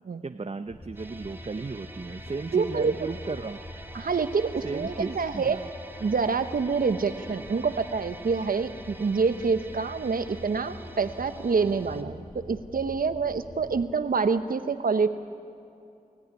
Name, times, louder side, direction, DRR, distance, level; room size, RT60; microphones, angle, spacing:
voice 1, 0.2-3.6 4.6-5.7, right 4 dB, 40° right, 8 dB, 0.8 m, -35 dB
sound 1, 0.7-13.9, left 1 dB, 30° left, 4.1 m, -45 dB
sound 2, 0.9-12.0, right 2 dB, 15° right, 2.0 m, -46 dB
voice 2, 2.5-2.9 3.9-5.6 6.0-15.1, right 5 dB, 75° right, 10 dB, 1.0 m, -26 dB
27.5 x 14.0 x 9.7 m, 2.6 s
cardioid pair, 50°, 15 cm